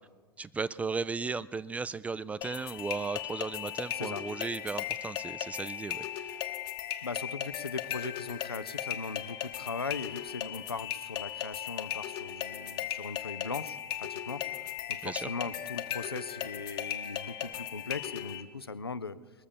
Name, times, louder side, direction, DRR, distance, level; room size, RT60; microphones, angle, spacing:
voice 1, 0.4-6.4 15.0-15.3, right 4 dB, 10° right, 16 dB, 0.3 m, -36 dB
sound 1, 2.4-18.4, left 11 dB, 40° left, 1.0 m, -37 dB
voice 2, 7.0-14.4 14.9-19.2, left 4 dB, 85° left, 13 dB, 0.5 m, -39 dB
sound 2, 13.5-13.7 14.5-14.6 15.4-15.7 16.4-16.6 17.4-17.6, right 6 dB, 65° right, 3.4 m, -56 dB
21.0 x 7.2 x 7.0 m, 1.5 s
figure-of-eight pair, 85°, 12 cm